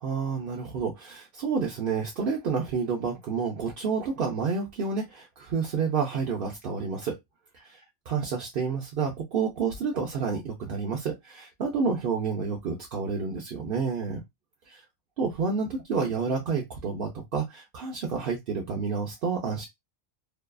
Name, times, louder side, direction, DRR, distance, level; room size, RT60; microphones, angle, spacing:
voice 1, 0.0-7.2 7.5-14.2 14.7-14.8 15.2-19.7, right 5 dB, 60° right, 0.6 m, -29 dB
2.6 x 2.3 x 2.2 m
omnidirectional pair, 1.5 m